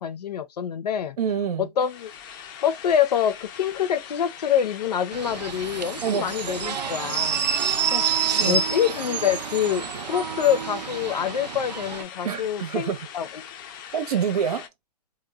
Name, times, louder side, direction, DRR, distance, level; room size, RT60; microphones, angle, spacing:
voice 1, 0.0-1.2 1.8-2.1 2.6-8.0 8.3-13.3, left 9 dB, 75° left, 0.6 m, -26 dB
voice 2, 1.2-1.7 6.0-6.4 7.4-8.0 8.4-8.6 12.2-13.1 13.9-14.7, right 7 dB, 70° right, 0.8 m, -27 dB
sound 1, 1.8-14.7, left 8 dB, 30° left, 0.4 m, -42 dB
sound 2, 5.1-12.0, right 7 dB, 90° right, 0.4 m, -28 dB
3.0 x 2.2 x 2.3 m
hypercardioid pair, 140°, 21 cm